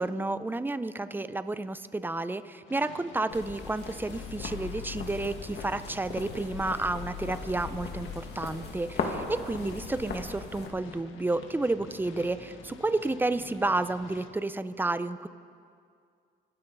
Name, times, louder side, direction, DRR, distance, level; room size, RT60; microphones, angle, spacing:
voice 1, 0.0-15.3, right 2 dB, 10° right, 13 dB, 0.6 m, -31 dB
sound 1, 2.7-14.3, left 6 dB, 80° left, 1.5 m, -49 dB
sound 2, 3.3-10.7, left 5 dB, 55° left, 2.1 m, -38 dB
sound 3, 4.2-14.3, right 2 dB, 40° right, 3.9 m, -54 dB
25.5 x 12.5 x 4.0 m, 2.2 s
cardioid pair, 90°, 20 cm